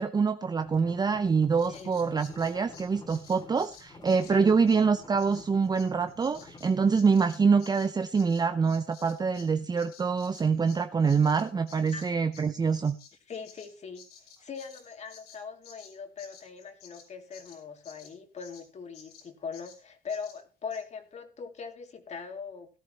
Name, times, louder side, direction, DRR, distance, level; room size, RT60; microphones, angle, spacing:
voice 1, 0.0-13.0, right 5 dB, 25° right, 10 dB, 0.7 m, -25 dB
sound 1, 0.6-6.9, left 3 dB, 25° left, 2.6 m, -51 dB
Bird vocalization bird call bird song, 1.6-9.5 9.8-18.7 18.9-19.3 19.5-19.8 20.1-20.4 20.7-20.8, left 7 dB, 70° left, 5.8 m, -53 dB
voice 2, 4.2-4.6 11.9-12.1 13.3-14.1 14.4-22.7, left 5 dB, 40° left, 6 dB, 2.7 m, -41 dB
17.5 x 12.5 x 3.0 m, 0.30 s
cardioid pair, 110°, 17 cm